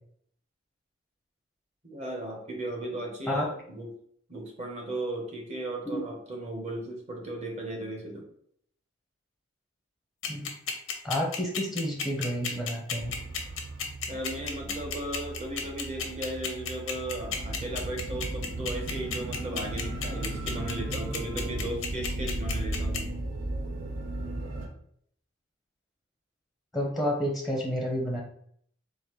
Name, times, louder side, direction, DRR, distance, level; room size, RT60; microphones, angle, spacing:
voice 1, 1.8-3.9 4.3-8.3 14.1-23.1, right 1 dB, 35° right, 0 dB, 1.0 m, -36 dB
sound 1, 10.2-23.0, left 7 dB, 90° left, 0.6 m, -32 dB
voice 2, 11.0-13.1 26.7-28.2, equal, ahead, -2 dB, 0.6 m, -30 dB
sound 2, 13.0-24.7, right 1 dB, 80° right, 0.6 m, -36 dB
3.8 x 2.5 x 3.0 m, 0.65 s
head